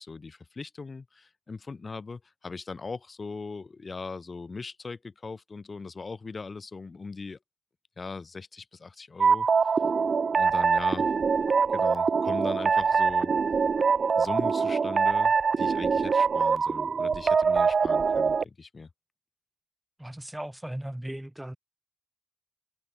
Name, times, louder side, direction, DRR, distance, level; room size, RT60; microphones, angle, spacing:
voice 1, 0.0-7.4 8.0-9.7 10.3-11.1 11.7-13.3 14.2-18.9, left 4 dB, 55° left, 7.6 m, -39 dB
sound 1, 9.2-18.4, right 5 dB, 70° right, 0.9 m, -24 dB
voice 2, 20.0-21.6, right 1 dB, 10° right, 1.6 m, -37 dB
cardioid pair, 40°, 0 cm